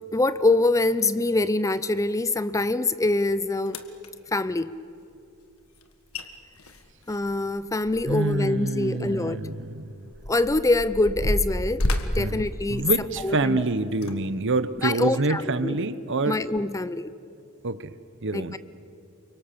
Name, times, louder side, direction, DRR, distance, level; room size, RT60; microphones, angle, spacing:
voice 1, 0.1-3.8 4.3-4.8 7.1-9.4 10.3-12.9 13.2-13.6 14.8-15.8 16.3-17.1 18.3-18.6, left 2 dB, 15° left, 15 dB, 0.5 m, -24 dB
sound 1, 3.7-4.1 5.8-5.9 6.1-6.2 6.6-8.4 8.7-8.9 9.6-13.3 13.9-14.1 14.7-14.9, left 1 dB, 70° left, 1.7 m, -30 dB
voice 2, 8.1-10.0 12.2-12.4 12.7-16.4 17.6-17.9 18.2-18.5, right 2 dB, 60° right, 14 dB, 1.0 m, -26 dB
28.5 x 24.5 x 6.9 m, 2.5 s
head